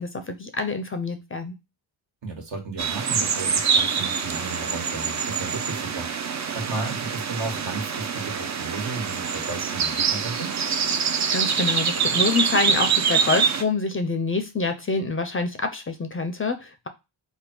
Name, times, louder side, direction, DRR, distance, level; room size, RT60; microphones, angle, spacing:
voice 1, 0.0-1.6 11.3-16.9, left 3 dB, 30° left, 7 dB, 0.5 m, -26 dB
voice 2, 2.2-10.6, right 3 dB, 65° right, 2 dB, 1.3 m, -34 dB
sound 1, 2.8-13.6, right 6 dB, 40° right, 0.5 m, -25 dB
3.5 x 2.2 x 4.4 m, 0.25 s
cardioid pair, 90°, 47 cm